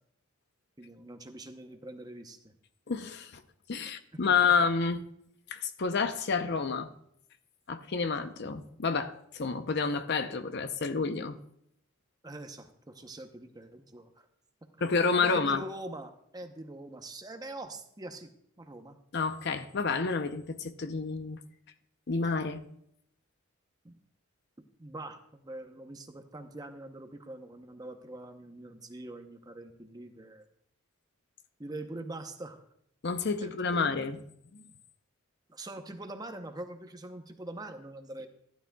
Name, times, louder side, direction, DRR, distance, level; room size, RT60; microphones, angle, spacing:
voice 1, 0.8-2.5 12.2-14.3 14.8-14.9 15.2-18.3 18.6-19.0 23.8-24.0 24.6-30.4 31.6-32.6 33.4-34.0 35.5-38.3, right 2 dB, 20° right, 6 dB, 0.7 m, -44 dB
voice 2, 2.9-3.4 3.7-5.0 5.5-6.9 7.7-11.4 14.8-15.6 19.1-21.4 22.1-22.6 33.0-34.2 34.5-34.7, left 5 dB, 55° left, 10 dB, 0.6 m, -29 dB
15.0 x 11.5 x 2.3 m, 0.72 s
head